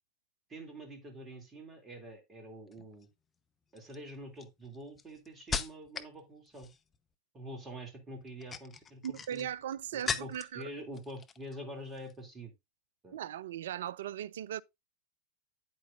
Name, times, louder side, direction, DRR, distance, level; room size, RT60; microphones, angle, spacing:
voice 1, 0.5-3.1 3.7-6.7 7.3-9.5 9.9-12.5 13.0-13.2, equal, 20° right, 2.7 m, -46 dB
sound 1, 2.7-3.1 3.8-6.2 6.5-7.0 8.2-10.6 10.9-11.6 11.9-12.1, left 6 dB, 20° left, 0.7 m, -39 dB
voice 2, 9.0-10.7 13.1-14.6, right 10 dB, 60° right, 0.4 m, -38 dB
9.4 x 8.7 x 2.5 m
figure-of-eight pair, 90°, 0 cm